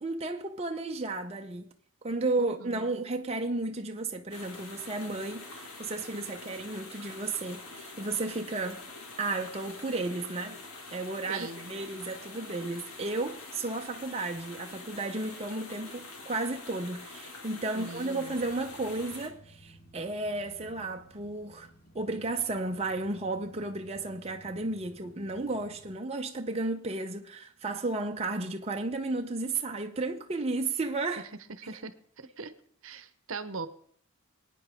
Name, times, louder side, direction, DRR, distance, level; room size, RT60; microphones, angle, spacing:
voice 1, 0.0-1.7 2.0-8.8 9.2-10.6 10.9-21.7 21.9-31.3, right 2 dB, 30° right, 0.7 m, -33 dB
voice 2, 2.4-2.9 11.3-11.7 17.7-18.4 31.6-32.5 32.8-33.7, right 4 dB, 65° right, 0.9 m, -41 dB
sound 1, 4.3-19.3, left 3 dB, 80° left, 2.2 m, -46 dB
sound 2, 18.3-25.9, right 1 dB, 45° left, 1.4 m, -56 dB
25.5 x 9.3 x 3.6 m
head